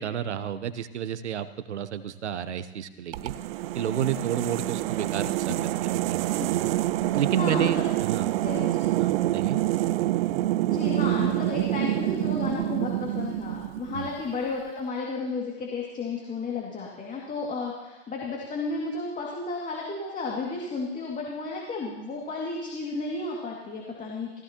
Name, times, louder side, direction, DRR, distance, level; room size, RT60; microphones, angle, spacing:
voice 1, 0.0-3.3 3.7-6.7 7.1-8.3 9.0-9.6 13.9-14.1, right 9 dB, 80° right, 14 dB, 0.9 m, -31 dB
sound 1, 3.1-14.2, right 15 dB, 60° right, 0.5 m, -27 dB
voice 2, 7.1-7.8 8.4-8.7 10.7-24.4, left 3 dB, 25° left, -2 dB, 2.4 m, -33 dB
16.0 x 16.0 x 3.0 m, 1.1 s
hypercardioid pair, 100°, 34 cm